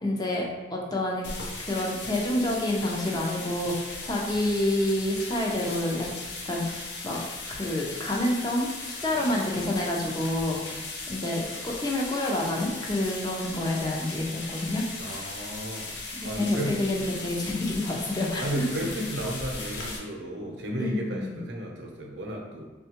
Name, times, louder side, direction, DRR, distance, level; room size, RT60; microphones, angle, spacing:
voice 1, 0.0-1.3 1.6-6.1 6.4-7.2 7.5-10.7 11.1-14.9 16.4-18.4 20.8-21.4, left 1 dB, 25° left, -2 dB, 0.5 m, -28 dB
sound 1, 1.2-20.0, left 3 dB, 80° left, 0.6 m, -38 dB
voice 2, 9.1-9.4 10.5-10.8 15.0-15.9 16.2-16.8 18.4-22.6, right 1 dB, 85° right, 0 dB, 0.6 m, -34 dB
3.5 x 2.3 x 2.9 m, 1.3 s
head